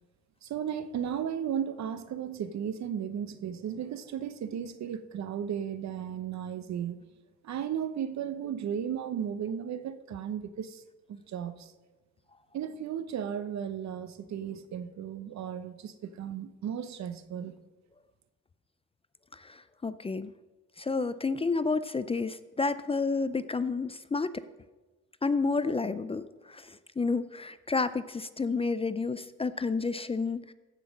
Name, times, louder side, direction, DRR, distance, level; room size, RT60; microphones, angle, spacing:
voice 1, 0.4-7.0 7.4-10.8 11.1-11.7 12.5-17.6, right 8 dB, 65° right, 0.9 m, -35 dB
voice 2, 19.3-20.3 20.8-24.4 25.2-30.5, left 4 dB, 20° left, 0.5 m, -30 dB
15.0 x 5.7 x 6.4 m
cardioid pair, 90°, 30 cm